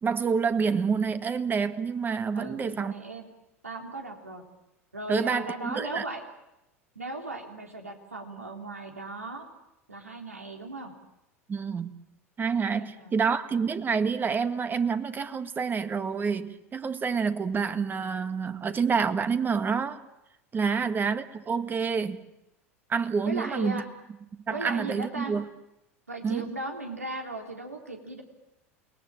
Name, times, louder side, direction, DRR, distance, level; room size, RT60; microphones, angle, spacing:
voice 1, 0.0-2.9 5.1-6.0 11.5-12.0 12.4-20.0 20.5-22.2 22.9-23.8 24.5-25.5 26.2-26.5, right 5 dB, 25° right, 10 dB, 1.8 m, -28 dB
voice 2, 2.3-3.3 3.6-4.4 4.9-6.2 7.0-9.5 9.9-10.9 12.7-13.2 20.6-20.9 23.2-23.9 24.5-25.3 26.1-28.2, right 2 dB, 90° right, 3 dB, 3.7 m, -37 dB
29.0 x 21.0 x 8.9 m, 0.88 s
figure-of-eight pair, 80°, 8 cm